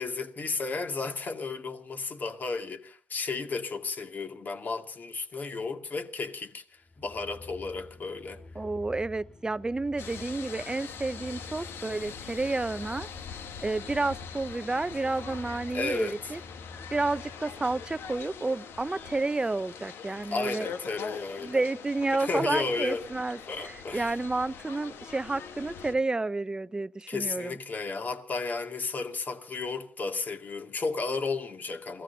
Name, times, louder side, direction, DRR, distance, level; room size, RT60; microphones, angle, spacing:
voice 1, 0.0-8.4 15.7-16.2 20.3-21.6 22.2-23.0 23.5-24.2 27.1-32.0, left 4 dB, 45° left, 2.4 m, -33 dB
sound 1, 6.8-18.4, left 3 dB, 20° left, 6.9 m, -48 dB
voice 2, 8.5-13.1 13.6-16.4 16.9-20.7 21.4-27.5, right 3 dB, 20° right, 0.7 m, -30 dB
sound 2, 10.0-25.9, left 7 dB, 70° left, 1.4 m, -43 dB
28.5 x 16.5 x 2.8 m
supercardioid pair, 60°, 4 cm